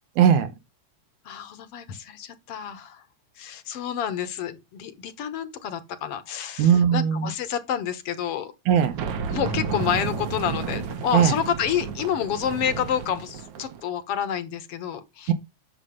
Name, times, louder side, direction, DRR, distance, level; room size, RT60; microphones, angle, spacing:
voice 1, 0.2-0.5 6.6-7.3 8.7-9.0 11.1-11.4 15.3-15.4, right 8 dB, 80° right, 2.4 m, -19 dB
voice 2, 1.3-3.0 3.4-8.5 9.3-15.3, left 9 dB, 60° left, 1.9 m, -29 dB
sound 1, 8.8-13.8, right 6 dB, 60° right, 1.8 m, -32 dB
9.5 x 6.7 x 5.2 m
omnidirectional pair, 3.4 m